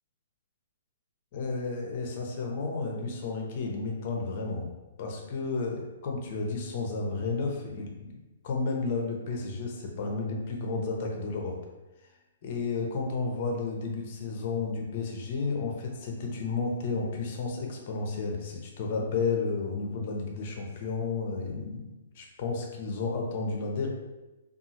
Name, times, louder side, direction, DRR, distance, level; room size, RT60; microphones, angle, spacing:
voice 1, 1.3-4.7 5.0-8.1 8.4-11.6 12.4-23.9, left 4 dB, 50° left, 1 dB, 0.6 m, -32 dB
2.7 x 2.4 x 2.8 m, 1.1 s
hypercardioid pair, 125°, 0 cm